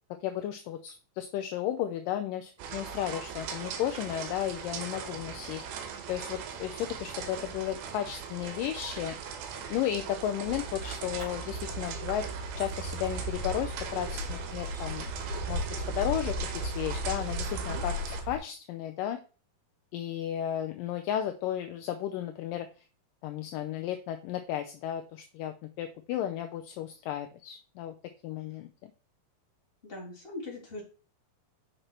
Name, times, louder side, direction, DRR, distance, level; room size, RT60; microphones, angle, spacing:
voice 1, 0.2-5.8 6.1-9.2 9.7-12.3 12.6-15.1 15.5-19.2 19.9-22.7 23.2-27.9 28.2-28.7, left 11 dB, 80° left, 6 dB, 2.1 m, -34 dB
sound 1, 2.6-18.2, right 7 dB, 85° right, 3.0 m, -40 dB
sound 2, 10.4-18.4, equal, 45° right, 4.3 m, -36 dB
voice 2, 29.8-30.8, left 2 dB, 15° left, -3 dB, 3.0 m, -41 dB
6.6 x 5.8 x 4.4 m, 0.35 s
omnidirectional pair, 4.3 m